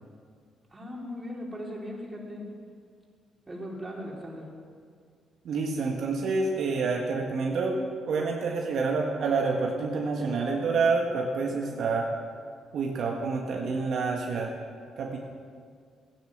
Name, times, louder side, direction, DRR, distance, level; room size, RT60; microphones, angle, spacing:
voice 1, 0.7-2.5 3.5-4.5, equal, 20° right, -3 dB, 4.2 m, -38 dB
voice 2, 5.4-7.8 8.1-12.1 12.7-14.5 15.0-15.2, right 4 dB, 65° right, 0 dB, 1.6 m, -28 dB
15.5 x 10.0 x 7.4 m, 2.1 s
cardioid pair, 90°, 0 cm